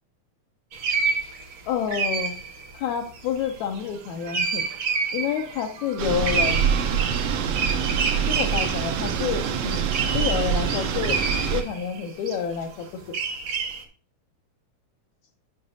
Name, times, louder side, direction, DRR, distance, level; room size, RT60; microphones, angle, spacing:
sound 1, 0.7-12.6 13.0-13.8, right 5 dB, 60° right, 1.3 m, -29 dB
voice 1, 1.7-2.3 2.8-4.6 5.1-6.7 8.3-9.9 10.1-11.2 11.5-13.2, left 7 dB, 75° left, 2 dB, 1.9 m, -28 dB
sound 2, 6.0-11.6, right 7 dB, 75° right, 1.4 m, -25 dB
10.5 x 5.7 x 2.7 m, 0.42 s
omnidirectional pair, 3.6 m